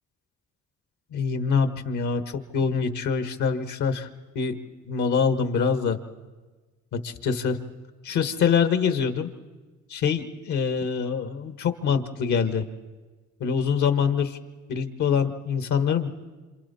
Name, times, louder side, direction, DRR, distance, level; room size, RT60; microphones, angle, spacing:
voice 1, 1.1-4.1 4.3-4.6 4.9-6.0 6.9-7.6 8.0-9.3 9.9-12.6 13.4-14.4 14.7-16.1, left 6 dB, 75° left, 8 dB, 1.6 m, -24 dB
27.0 x 27.0 x 4.3 m, 1.3 s
cardioid pair, 90°, 30 cm